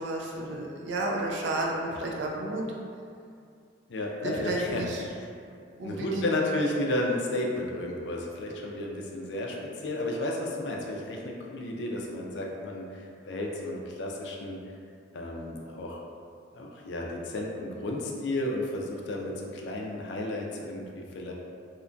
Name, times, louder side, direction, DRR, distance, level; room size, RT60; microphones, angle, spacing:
voice 1, 0.0-2.6 4.2-5.0 5.8-6.3, right 2 dB, 70° right, -1 dB, 0.4 m, -32 dB
voice 2, 3.9-4.8 5.1-5.3 5.8-14.6 15.1-16.0 16.5-21.3, left 1 dB, 65° left, -1 dB, 0.4 m, -32 dB
2.8 x 2.2 x 2.5 m, 2.4 s
head